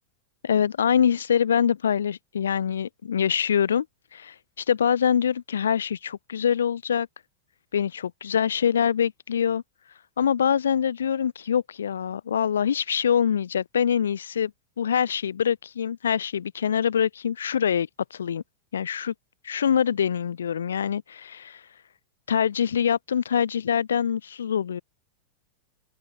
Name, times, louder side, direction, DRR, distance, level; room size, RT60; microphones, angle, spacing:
voice 1, 0.4-3.8 4.1-7.1 7.7-9.6 10.2-14.5 14.8-18.4 18.7-19.1 19.4-21.6 22.3-24.8, left 8 dB, 65° left, 1.3 m, -24 dB
open air
figure-of-eight pair, 90°, 0 cm